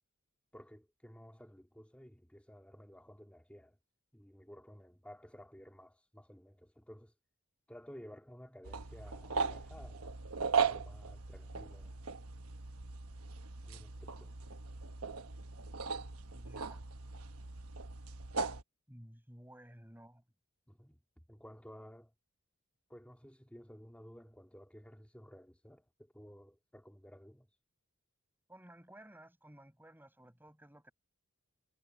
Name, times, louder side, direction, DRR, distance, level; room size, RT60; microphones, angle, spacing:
voice 1, 0.5-3.8 4.1-7.1 7.7-10.2 10.6-12.0 13.6-14.3 20.7-21.0 21.3-22.1 22.9-27.6, equal, 5° left, 2.7 m, -54 dB
sound 1, 8.6-18.6, right 5 dB, 75° right, 1.2 m, -38 dB
voice 2, 16.3-16.9 18.9-20.2 28.5-30.9, right 1 dB, 10° right, 7.7 m, -55 dB
head